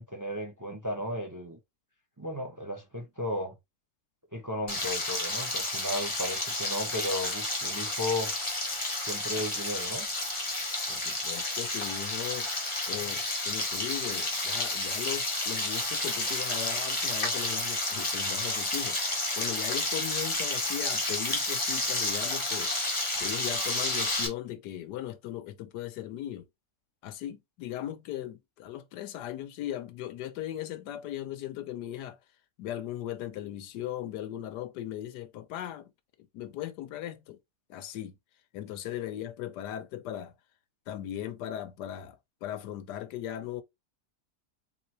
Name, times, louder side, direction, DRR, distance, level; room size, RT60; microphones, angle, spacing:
voice 1, 0.0-1.6 2.2-3.6 4.3-8.3 9.1-10.1, left 1 dB, 15° right, 0.9 m, -34 dB
Frying (food), 4.7-24.3, left 2 dB, 20° left, 1.2 m, -31 dB
voice 2, 10.9-12.6 12.9-19.0 19.4-22.7 23.2-26.5 27.0-32.2 32.6-35.9 36.3-37.4 37.7-38.1 38.5-40.3 40.9-43.6, left 12 dB, 85° left, 1.3 m, -38 dB
4.0 x 3.8 x 3.0 m
omnidirectional pair, 1.8 m